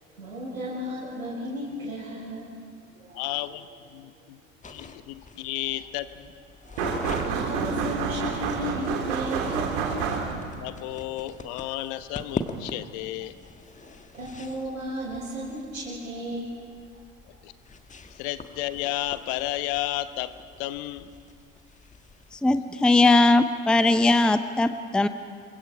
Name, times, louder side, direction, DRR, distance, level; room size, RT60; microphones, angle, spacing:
voice 1, 0.1-2.5 2.9-3.3 6.7-6.9 7.2-9.8 14.1-16.5, equal, 85° right, -10 dB, 6.1 m, -34 dB
voice 2, 3.1-4.4 4.7-6.3 10.6-13.4 17.2-17.5 18.1-21.1, left 15 dB, 55° left, 13 dB, 1.1 m, -33 dB
sound 1, 4.6-22.4, left 3 dB, 20° left, 1.4 m, -42 dB
sound 2, 6.8-10.6, right 6 dB, 65° right, 2.9 m, -29 dB
voice 3, 22.4-25.1, left 2 dB, ahead, 11 dB, 0.7 m, -20 dB
28.0 x 23.5 x 4.9 m, 2.2 s
figure-of-eight pair, 70°, 40 cm